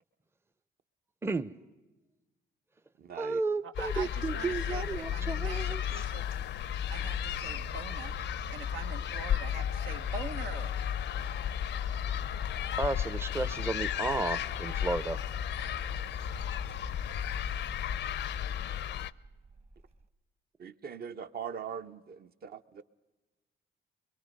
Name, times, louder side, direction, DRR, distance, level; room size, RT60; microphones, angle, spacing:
voice 1, 1.2-1.5 3.2-5.8 12.8-15.2, right 3 dB, 10° right, 15 dB, 0.6 m, -33 dB
voice 2, 3.0-3.4 20.6-22.8, right 7 dB, 50° right, 10 dB, 0.9 m, -41 dB
voice 3, 3.6-6.3 6.9-10.7, right 6 dB, 80° right, 8 dB, 1.0 m, -44 dB
sound 1, 3.7-19.1, left 10 dB, 65° left, 0.6 m, -34 dB
sound 2, 5.5-20.1, right 4 dB, 30° right, 1.3 m, -49 dB
Crowd, 9.5-17.2, left 12 dB, 90° left, 0.8 m, -50 dB
23.5 x 22.0 x 5.3 m, 1.2 s
cardioid pair, 90°, 20 cm